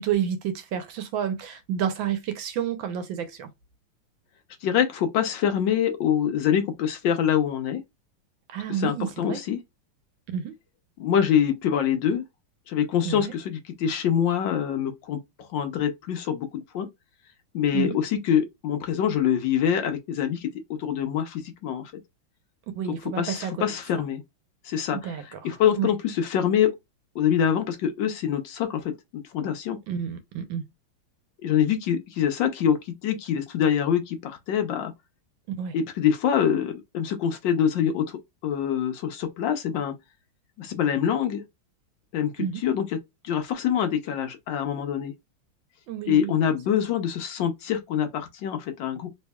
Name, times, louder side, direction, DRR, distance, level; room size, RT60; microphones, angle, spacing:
voice 1, 0.0-3.5 8.5-9.4 10.3-10.5 13.0-13.3 17.7-18.0 22.7-23.5 24.9-25.9 29.9-30.6 35.5-35.7 42.4-42.6 45.9-46.5, right 8 dB, 75° right, 1.4 m, -30 dB
voice 2, 4.6-7.8 8.8-9.6 11.0-12.2 12.7-16.9 17.5-20.5 20.8-21.9 23.2-24.2 24.6-26.7 27.1-29.8 31.4-34.9 35.7-39.9 40.6-41.4 42.1-43.0 43.2-45.1 46.1-49.1, left 9 dB, 75° left, 1.4 m, -25 dB
3.5 x 3.2 x 2.2 m
omnidirectional pair, 2.2 m